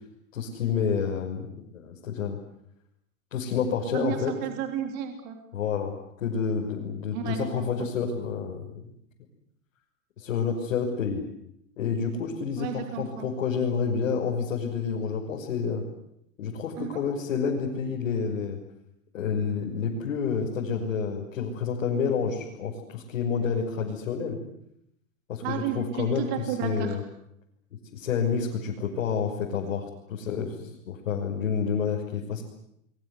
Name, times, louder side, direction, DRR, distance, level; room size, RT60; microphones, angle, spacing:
voice 1, 0.3-2.4 3.3-4.3 5.5-8.9 10.2-11.2 11.8-15.8 16.4-18.6 19.1-24.4 25.3-27.0 27.9-32.4, left 6 dB, 70° left, -2 dB, 6.2 m, -29 dB
voice 2, 3.9-5.4 7.1-7.9 12.6-13.2 16.8-17.0 25.4-26.9, right 9 dB, 35° right, 5 dB, 3.2 m, -32 dB
27.5 x 23.5 x 8.4 m, 0.74 s
supercardioid pair, 170°, 40 cm